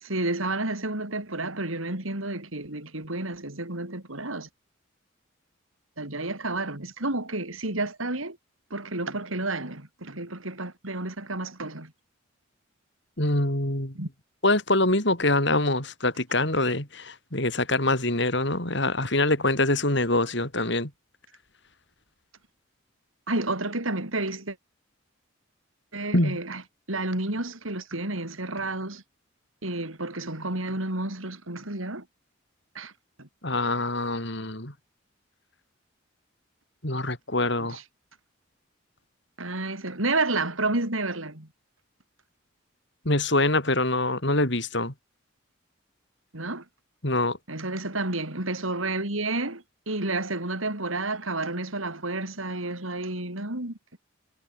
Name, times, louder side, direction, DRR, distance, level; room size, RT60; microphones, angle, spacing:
voice 1, 0.0-4.5 6.0-8.4 8.7-11.9 13.9-14.1 23.3-24.6 25.9-26.6 26.9-29.0 29.6-32.0 32.7-32.9 33.2-33.3 37.6-37.8 39.4-41.5 46.3-46.6 47.5-54.0, right 2 dB, 85° right, 5.0 m, -30 dB
voice 2, 13.2-13.9 14.4-20.9 26.1-26.4 33.4-34.7 36.8-37.8 43.1-44.9 47.0-47.4, left 2 dB, 60° left, 5.3 m, -24 dB
head